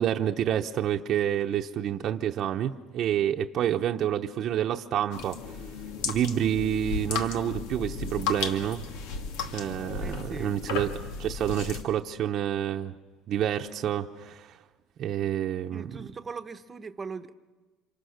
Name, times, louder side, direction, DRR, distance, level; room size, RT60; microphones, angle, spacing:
voice 1, 0.0-5.4 6.0-8.8 9.5-10.9 11.2-12.9 13.3-14.6 15.0-16.1, right 10 dB, 45° right, 0.9 m, -28 dB
Tap leaking dripping, 5.1-11.8, left 5 dB, 90° left, 2.3 m, -34 dB
voice 2, 10.0-10.6 15.7-17.3, right 5 dB, 20° right, 1.0 m, -40 dB
30.0 x 27.0 x 6.6 m
cardioid pair, 150°, 0 cm